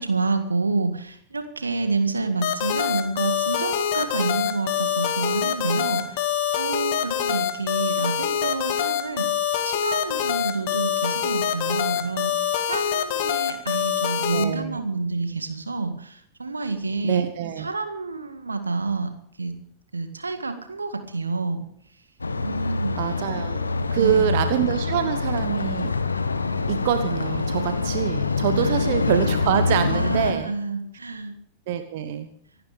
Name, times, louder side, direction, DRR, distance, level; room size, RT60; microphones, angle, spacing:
voice 1, 0.0-6.3 6.6-9.4 9.6-17.3 17.6-19.1 19.4-19.5 19.9-21.6 22.4-23.0 24.0-24.4 28.5-28.8 29.9-31.4, right 3 dB, 80° right, 8 dB, 1.8 m, -28 dB
sound 1, 2.4-14.4, left 10 dB, 50° left, 1.9 m, -25 dB
voice 2, 14.3-14.8 17.0-17.7 23.0-23.6 23.9-26.0 26.7-30.5 31.7-32.3, right 10 dB, 50° right, 9 dB, 1.2 m, -25 dB
sound 2, 22.2-30.3, left 3 dB, 80° left, 1.1 m, -25 dB
25.0 x 12.0 x 3.5 m, 0.65 s
figure-of-eight pair, 90°, 0 cm